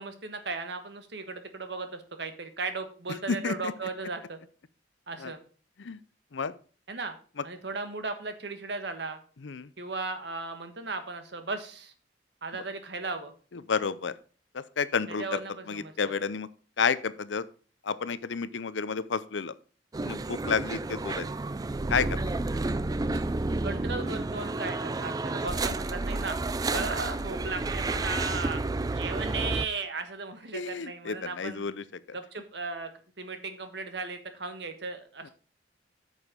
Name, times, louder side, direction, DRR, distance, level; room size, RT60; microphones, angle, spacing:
voice 1, 0.0-4.4 5.1-5.4 6.9-7.1 7.4-9.2 9.8-11.9 12.4-13.3 15.1-16.2 23.6-26.4 26.7-28.6 28.9-31.7 32.1-32.9 33.2-35.3, right 3 dB, 65° right, 8 dB, 1.4 m, -36 dB
voice 2, 3.3-3.7 5.2-5.3 5.8-6.0 6.3-6.5 9.4-9.7 13.7-14.1 14.8-15.4 15.7-16.5 16.8-17.4 17.9-19.5 20.0-21.2 21.9-22.2 30.5-31.7, left 5 dB, 80° left, 16 dB, 0.6 m, -30 dB
sound 1, 19.9-29.7, right 2 dB, 20° right, 0.3 m, -31 dB
8.9 x 6.5 x 5.1 m, 0.39 s
head